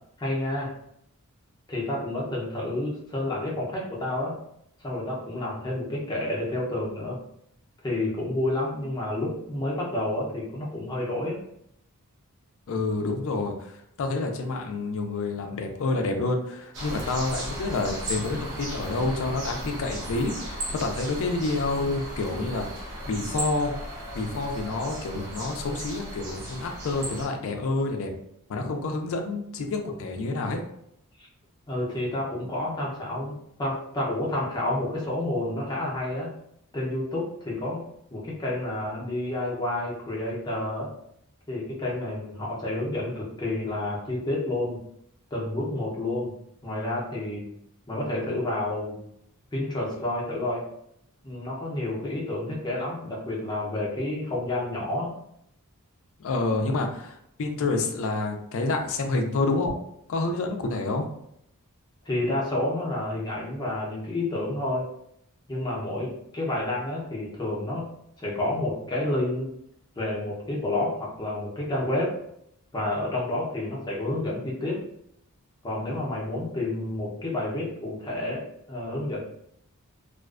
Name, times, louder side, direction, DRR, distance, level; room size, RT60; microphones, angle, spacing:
voice 1, 0.2-0.7 1.7-4.4 4.8-7.2 7.8-11.4 31.2-31.3 31.7-36.3 36.7-37.8 38.1-40.9 41.5-44.8 45.3-46.3 46.6-47.5 47.9-49.0 49.5-50.7 51.2-55.2 62.1-64.9 65.5-67.9 68.2-69.5 70.0-72.2 72.7-74.8 75.6-79.2, left 1 dB, 20° left, -4 dB, 0.6 m, -29 dB
voice 2, 12.7-22.7 23.0-23.7 24.1-28.1 28.5-30.6 56.2-59.7 60.1-61.1, left 3 dB, 65° left, 4 dB, 0.4 m, -28 dB
Early morning with parrots and other birds, 16.7-27.3, right 1 dB, 90° right, 0.7 m, -36 dB
2.4 x 2.2 x 2.3 m, 0.74 s
head